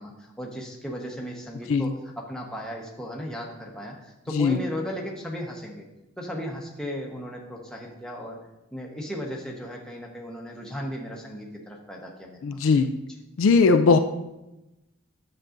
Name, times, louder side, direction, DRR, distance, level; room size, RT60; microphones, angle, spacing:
voice 1, 0.0-5.8 6.2-8.4 8.7-12.7, equal, 5° left, -2 dB, 1.0 m, -36 dB
voice 2, 12.4-12.9 13.4-14.0, left 4 dB, 65° left, 7 dB, 0.4 m, -19 dB
9.7 x 6.8 x 2.6 m, 0.96 s
head